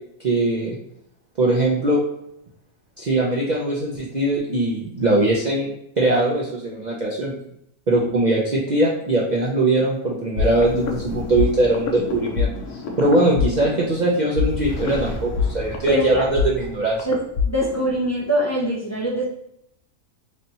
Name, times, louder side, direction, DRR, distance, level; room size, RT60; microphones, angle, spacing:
voice 1, 0.2-0.8 1.4-2.0 3.0-5.7 6.0-7.3 7.9-17.0, right 2 dB, 70° right, -4 dB, 0.4 m, -21 dB
sound 1, 10.4-17.9, left 5 dB, 60° left, 0.7 m, -26 dB
voice 2, 15.9-16.2 17.0-17.2 17.5-19.2, equal, 15° left, -6 dB, 0.6 m, -23 dB
3.3 x 2.7 x 4.1 m, 0.77 s
omnidirectional pair, 1.6 m